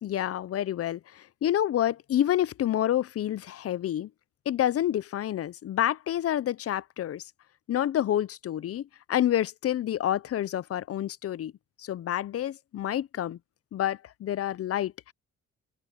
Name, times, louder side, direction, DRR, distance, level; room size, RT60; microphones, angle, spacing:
voice 1, 0.0-4.1 4.5-7.3 7.7-11.5 11.8-13.4 13.7-15.1, left 11 dB, 50° left, 0.6 m, -28 dB
open air
cardioid pair, 90°, 30 cm